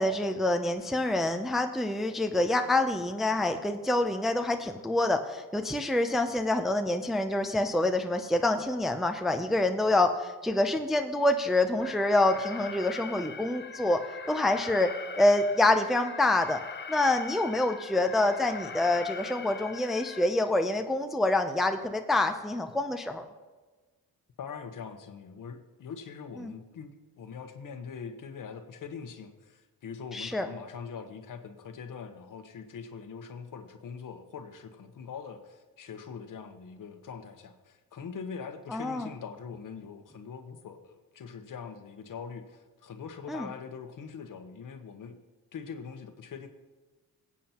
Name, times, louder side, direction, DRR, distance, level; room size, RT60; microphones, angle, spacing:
voice 1, 0.0-14.0 14.3-14.9 15.2-16.6 16.9-23.3 26.4-26.5 30.1-30.5 38.7-39.1 43.3-43.5, left 2 dB, ahead, 5 dB, 0.5 m, -26 dB
Alarm, 11.8-20.3, left 5 dB, 30° left, 0.8 m, -42 dB
voice 2, 24.4-45.2 45.5-46.5, left 6 dB, 60° left, 7 dB, 1.1 m, -43 dB
21.0 x 8.5 x 2.9 m, 1.3 s
cardioid pair, 115°, 37 cm